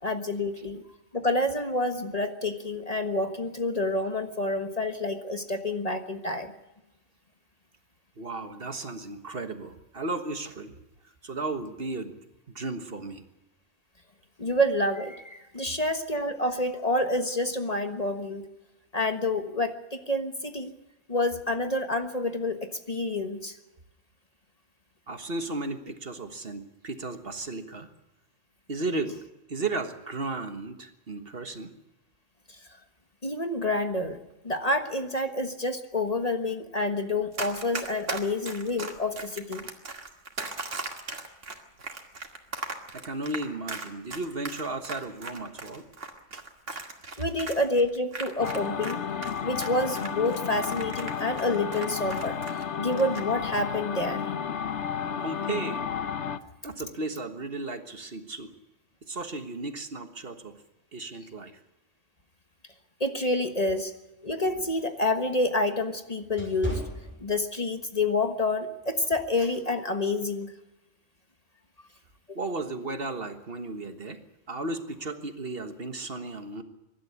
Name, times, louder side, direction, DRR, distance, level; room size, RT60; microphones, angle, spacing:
voice 1, 0.0-0.8 1.1-6.5 14.4-18.4 18.9-20.7 21.1-23.6 33.2-34.2 34.4-39.6 47.2-49.0 49.4-54.3 63.0-63.9 64.2-66.8 67.2-70.5 72.3-72.4, left 2 dB, 30° left, 7 dB, 1.4 m, -28 dB
voice 2, 8.2-10.7 11.2-12.2 12.5-13.2 25.1-27.9 28.7-29.2 29.5-31.7 42.9-45.9 46.3-46.4 55.2-55.8 56.6-58.5 59.0-60.6 60.9-61.6 72.3-74.2 74.5-76.6, right 2 dB, 50° right, 8 dB, 1.7 m, -34 dB
Run, 37.3-48.9 49.2-52.6 52.9-53.2, right 3 dB, 85° right, 2.5 m, -37 dB
sound 1, 48.4-56.4, left 7 dB, 70° left, 1.2 m, -32 dB
sound 2, 64.1-67.8 68.3-68.5 69.1-69.4, equal, 10° left, 6.1 m, -38 dB
24.0 x 12.5 x 9.5 m, 0.99 s
omnidirectional pair, 1.2 m